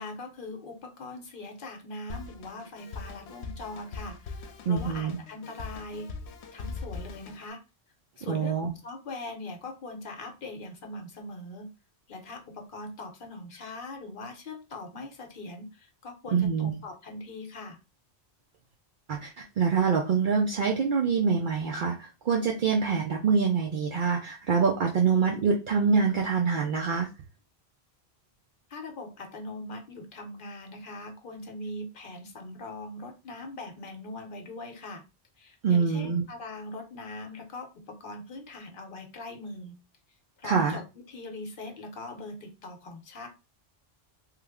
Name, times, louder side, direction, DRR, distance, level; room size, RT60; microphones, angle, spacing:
voice 1, 0.0-6.1 6.5-7.6 8.2-11.7 12.1-17.8 28.7-35.0 35.4-39.8 40.4-40.8 41.1-43.3, left 2 dB, 60° left, 3 dB, 0.9 m, -41 dB
Drum kit, 2.1-7.5, left 4 dB, 85° left, 0.8 m, -41 dB
voice 2, 4.7-5.2 8.3-8.7 16.3-16.7 19.1-27.1 35.6-36.2 40.4-40.8, right 5 dB, 60° right, 1 dB, 0.6 m, -25 dB
3.2 x 2.1 x 3.5 m, 0.28 s
omnidirectional pair, 1.1 m